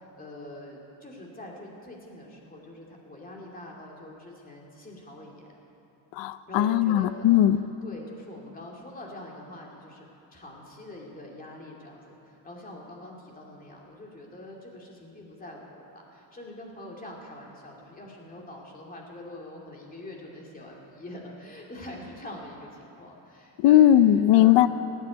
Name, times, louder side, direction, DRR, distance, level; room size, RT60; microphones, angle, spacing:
voice 1, 0.0-5.4 6.5-7.5 7.8-10.1 10.3-23.9 24.3-24.6, left 1 dB, 20° left, -2 dB, 2.4 m, -44 dB
voice 2, 6.2-7.6 23.6-24.7, left 12 dB, 70° left, 13 dB, 0.6 m, -18 dB
17.5 x 8.2 x 9.3 m, 2.7 s
cardioid pair, 165°, 45 cm